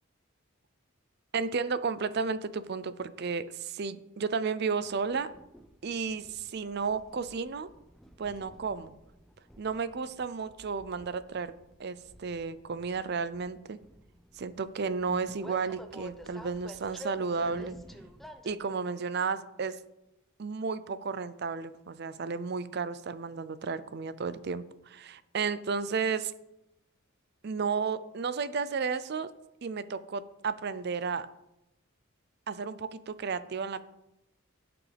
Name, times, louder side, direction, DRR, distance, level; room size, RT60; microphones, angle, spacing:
voice 1, 1.3-5.3 5.8-7.7 8.2-9.0 9.6-11.5 11.8-13.8 14.3-17.8 18.4-19.8 20.4-26.3 27.4-29.3 29.6-31.3 32.5-33.8, right 5 dB, 50° right, 15 dB, 0.5 m, -33 dB
Train, 4.8-18.6, equal, ahead, 0.5 m, -51 dB
15.5 x 6.0 x 3.4 m, 0.89 s
head